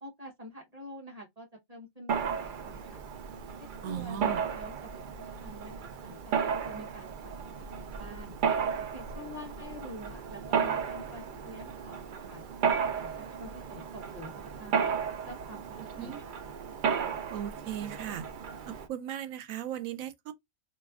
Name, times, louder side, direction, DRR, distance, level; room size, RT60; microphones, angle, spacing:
voice 1, 0.0-3.0 3.6-4.2 4.5-5.1 5.4-8.3 8.9-12.5 13.0-14.9 15.2-16.3, left 1 dB, 30° right, 1.0 m, -47 dB
Mechanisms, 2.1-18.9, right 6 dB, 60° right, 0.5 m, -34 dB
voice 2, 3.8-4.4 16.0-16.2 17.3-18.2 18.7-20.3, right 10 dB, 90° right, 1.0 m, -37 dB
4.0 x 2.9 x 2.3 m
omnidirectional pair, 1.4 m